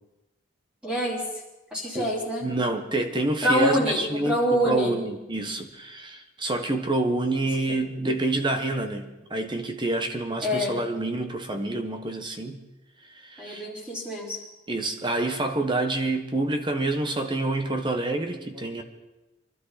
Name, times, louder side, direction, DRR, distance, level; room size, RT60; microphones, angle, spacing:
voice 1, 0.8-1.2 1.7-2.5 3.4-4.9 7.7-7.8 10.4-10.8 13.4-14.4, equal, 5° right, -4 dB, 3.6 m, -25 dB
voice 2, 2.4-12.6 13.0-13.7 14.7-18.8, right 2 dB, 20° right, 6 dB, 1.2 m, -27 dB
24.5 x 12.5 x 4.2 m, 1.0 s
head